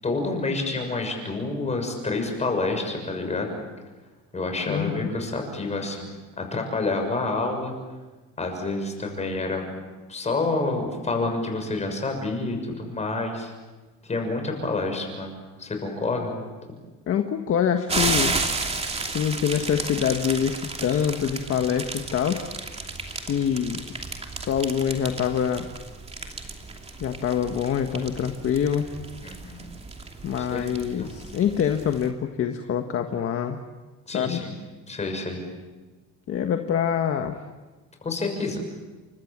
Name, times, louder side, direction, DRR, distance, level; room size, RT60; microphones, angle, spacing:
voice 1, 0.0-3.5 4.3-7.7 8.4-9.7 10.1-13.5 14.0-16.3 29.2-29.7 30.4-31.1 34.1-34.5 34.9-35.4 38.0-38.6, left 3 dB, 20° left, 4 dB, 6.6 m, -28 dB
voice 2, 4.7-5.1 17.1-18.3 19.1-22.5 23.1-23.8 24.3-25.7 27.0-28.9 30.2-33.6 34.1-34.4 36.3-37.3, left 8 dB, 45° left, 5 dB, 1.6 m, -25 dB
sound 1, 17.9-32.1, right 3 dB, 20° right, 2.9 m, -33 dB
29.5 x 25.0 x 7.5 m, 1.3 s
cardioid pair, 145°, 32 cm